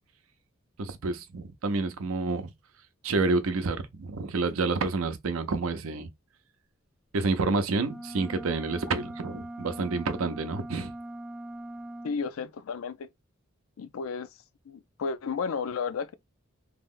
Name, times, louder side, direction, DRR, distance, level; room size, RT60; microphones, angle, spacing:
voice 1, 0.8-2.5 3.0-6.1 7.1-10.9, right 3 dB, 90° right, 0.6 m, -29 dB
sound 1, 7.8-12.2, right 1 dB, 5° right, 0.3 m, -41 dB
voice 2, 12.0-13.1 13.8-14.3 14.7-16.1, left 5 dB, 90° left, 0.4 m, -33 dB
2.8 x 2.1 x 3.7 m
head